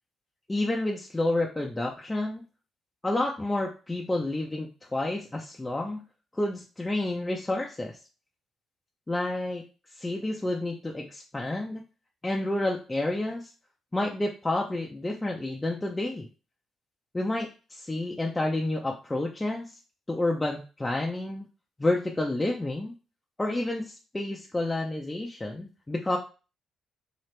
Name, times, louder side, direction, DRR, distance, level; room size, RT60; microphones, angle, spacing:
voice 1, 0.5-2.4 3.0-6.0 6.3-8.0 9.1-9.6 10.0-11.8 12.2-13.5 13.9-16.3 17.1-19.7 20.1-21.4 21.8-22.9 23.4-26.2, left 2 dB, 15° left, -1 dB, 0.5 m, -29 dB
2.8 x 2.8 x 3.2 m, 0.33 s
cardioid pair, 90°, 0 cm